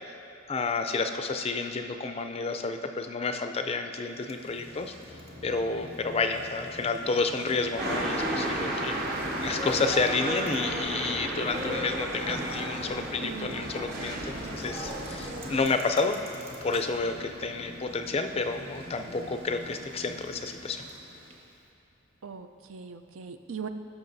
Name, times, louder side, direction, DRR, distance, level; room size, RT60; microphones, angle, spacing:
voice 1, 0.5-4.9 5.4-9.0 9.4-16.2 16.6-20.8, left 4 dB, 30° left, 7 dB, 0.4 m, -30 dB
Bicycle, 4.1-21.6, equal, 30° right, 1.0 m, -45 dB
sound 1, 7.8-15.6, right 1 dB, 50° right, 1.3 m, -33 dB
voice 2, 13.2-14.3 22.2-23.7, right 6 dB, 80° right, 8 dB, 0.5 m, -41 dB
18.0 x 5.9 x 2.7 m, 2.8 s
head